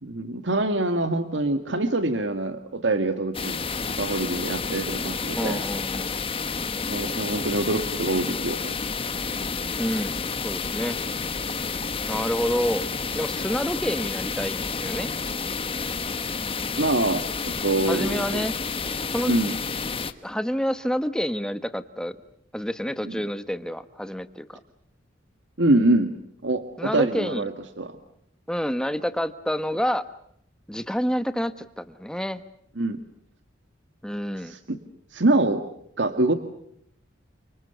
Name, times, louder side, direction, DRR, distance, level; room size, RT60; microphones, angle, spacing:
voice 1, 0.0-3.6 3.9-5.6 6.9-8.7 16.8-18.4 19.3-19.6 23.0-23.2 25.6-26.1 26.4-28.0 32.8-33.0 34.4-34.8 35.1-35.6 36.0-36.3, right 2 dB, 65° right, 8 dB, 1.8 m, -25 dB
sound 1, 3.3-20.1, left 5 dB, 30° left, 1.4 m, -30 dB
voice 2, 5.3-6.3 9.8-10.1 10.4-11.0 12.1-12.8 13.1-15.1 17.9-18.5 19.1-19.4 20.2-22.2 22.5-24.6 26.8-27.4 28.5-30.0 30.7-32.4 34.0-34.6, equal, 5° left, 11 dB, 1.2 m, -28 dB
30.0 x 26.5 x 6.9 m, 0.70 s
head